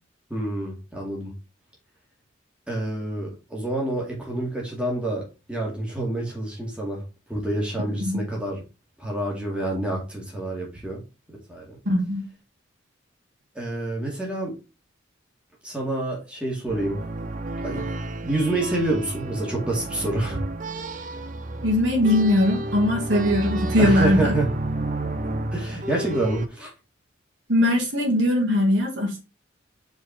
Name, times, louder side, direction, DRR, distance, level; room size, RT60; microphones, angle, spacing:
voice 1, 0.3-1.3 2.7-7.0 7.3-8.6 9.0-11.0 11.5-11.8 13.6-14.5 15.6-17.0 17.6-17.8 18.2-20.4 23.8-24.5 25.5-26.7, right 1 dB, 5° right, 2.2 m, -27 dB
voice 2, 11.9-12.2 21.6-24.3 27.5-29.2, left 1 dB, 65° right, 2.4 m, -20 dB
sound 1, 16.7-26.5, right 2 dB, 40° right, 0.6 m, -31 dB
5.2 x 4.6 x 4.4 m
head